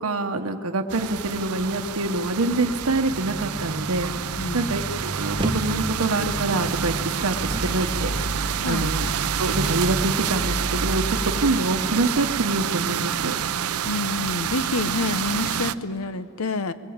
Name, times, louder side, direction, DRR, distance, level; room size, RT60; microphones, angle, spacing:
voice 1, 0.0-4.1 4.5-6.9 7.2-8.1 8.6-9.0 9.4-13.3, right 2 dB, 75° right, 5 dB, 0.9 m, -25 dB
sound 1, 0.9-15.7, right 9 dB, 90° right, 0.6 m, -28 dB
sound 2, 2.6-12.8, right 1 dB, 55° right, 1.0 m, -32 dB
voice 2, 4.4-4.7 8.6-8.9 13.8-16.7, left 3 dB, 85° left, 12 dB, 0.9 m, -28 dB
sound 3, 5.4-5.9 6.7-8.0 8.8-8.9, right 2 dB, 25° right, 0.7 m, -31 dB
21.5 x 20.0 x 8.7 m, 2.4 s
head